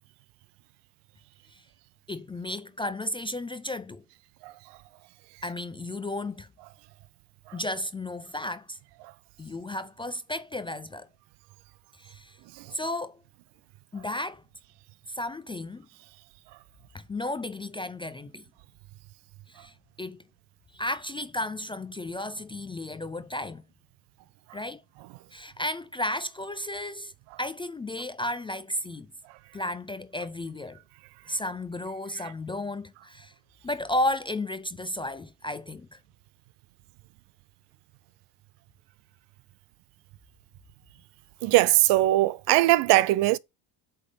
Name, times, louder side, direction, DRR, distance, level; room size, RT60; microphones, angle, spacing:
voice 1, 2.1-4.0 5.4-6.5 7.5-8.8 9.4-11.1 11.9-12.4 12.7-13.2 13.9-14.4 15.1-15.9 16.9-18.4 19.5-20.2 20.7-23.6 24.5-24.8 25.3-27.1 27.4-29.1 29.5-30.8 31.3-33.3 33.6-36.0, left 1 dB, 15° left, 0.3 m, -33 dB
voice 2, 41.4-43.4, right 17 dB, 65° right, 0.6 m, -20 dB
8.2 x 3.6 x 5.1 m
supercardioid pair, 105°, 45 cm